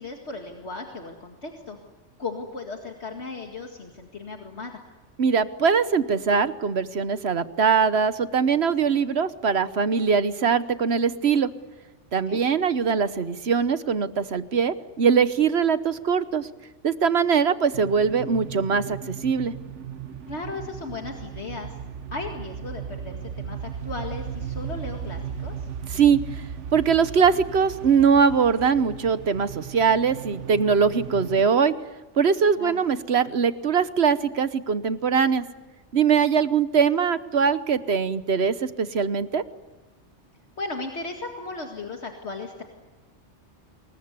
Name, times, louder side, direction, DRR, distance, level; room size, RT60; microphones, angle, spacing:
voice 1, 0.0-1.8 2.2-4.8 12.3-12.4 20.3-21.7 22.1-25.5 32.6-32.8 40.6-42.6, left 3 dB, 65° left, 2 dB, 2.4 m, -36 dB
voice 2, 5.2-11.5 12.1-16.5 16.8-19.5 25.9-26.2 26.7-31.7 32.2-35.4 35.9-39.4, right 6 dB, 65° right, 13 dB, 1.3 m, -22 dB
sound 1, 17.7-31.4, right 8 dB, 90° right, 1.4 m, -36 dB
27.0 x 22.0 x 9.6 m, 1.2 s
omnidirectional pair, 1.2 m